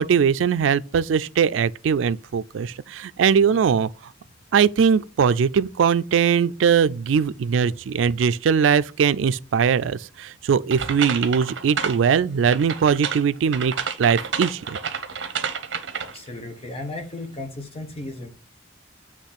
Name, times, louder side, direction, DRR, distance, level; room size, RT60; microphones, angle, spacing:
voice 1, 0.0-3.9 4.5-13.7 14.0-14.8, right 7 dB, 85° right, 0.4 m, -20 dB
sound 1, 10.7-12.1 12.5-16.3, right 6 dB, 70° right, 0.9 m, -29 dB
voice 2, 16.0-18.3, left 2 dB, 30° left, 1.2 m, -35 dB
8.3 x 3.1 x 5.9 m
head